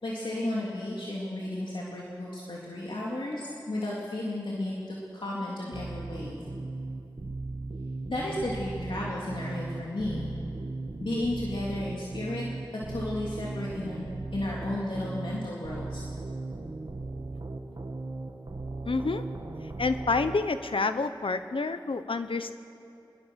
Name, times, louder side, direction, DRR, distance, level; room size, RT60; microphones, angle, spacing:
voice 1, 0.0-6.4 8.1-10.3 11.0-12.4 12.9-14.0 14.3-16.0, left 1 dB, 70° left, -5 dB, 3.4 m, -33 dB
sound 1, 5.7-20.4, right 2 dB, 60° right, 2.0 m, -37 dB
voice 2, 18.8-19.2 19.8-22.5, left 3 dB, 85° left, 10 dB, 1.0 m, -28 dB
24.5 x 21.5 x 6.5 m, 2.8 s
wide cardioid pair, 70°, 9 cm